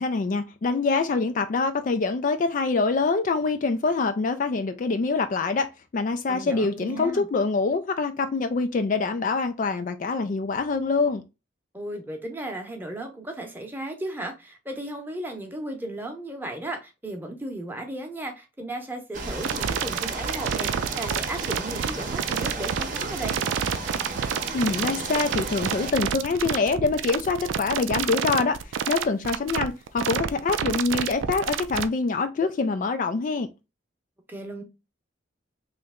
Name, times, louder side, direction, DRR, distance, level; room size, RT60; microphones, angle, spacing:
voice 1, 0.0-11.2 24.5-28.6 28.9-33.5, left 4 dB, 45° left, 0.3 m, -25 dB
voice 2, 6.3-7.3 11.7-23.4 34.3-34.6, right 1 dB, 10° right, 0.8 m, -35 dB
sound 1, 19.1-25.9, right 3 dB, 45° right, 0.8 m, -34 dB
sound 2, 19.4-31.8, right 8 dB, 75° right, 0.4 m, -28 dB
3.2 x 3.0 x 3.6 m
head